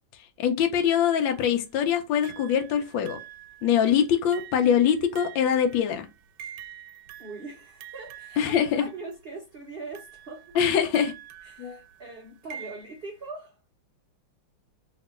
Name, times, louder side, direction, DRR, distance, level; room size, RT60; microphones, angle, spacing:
voice 1, 0.4-3.2 3.6-6.1 8.4-8.9 10.6-11.1 11.6-11.8, left 8 dB, 80° left, 1.3 m, -23 dB
sound 1, 0.8-1.4 2.2-9.1 9.9-13.3, right 10 dB, 90° right, 1.3 m, -47 dB
voice 2, 7.2-10.6 11.4-13.6, right 3 dB, 65° right, 0.5 m, -41 dB
3.0 x 2.9 x 4.1 m
omnidirectional pair, 2.1 m